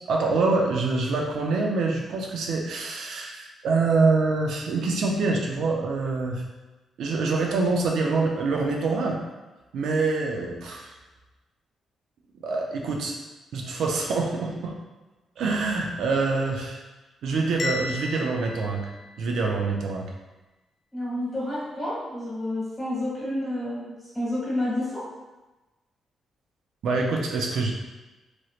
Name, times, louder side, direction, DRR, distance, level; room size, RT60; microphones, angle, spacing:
voice 1, 0.1-6.4 7.0-9.2 9.7-11.0 12.4-13.2 13.5-14.7 15.4-16.8 17.2-18.9 19.2-20.1 26.8-27.7, right 3 dB, 75° right, 0 dB, 0.4 m, -25 dB
Bell, 17.6-19.6, left 3 dB, 35° left, 0.4 m, -35 dB
voice 2, 20.9-25.1, left 1 dB, 15° left, -9 dB, 1.3 m, -29 dB
3.0 x 2.9 x 2.3 m, 1.1 s
wide cardioid pair, 170°, 0 cm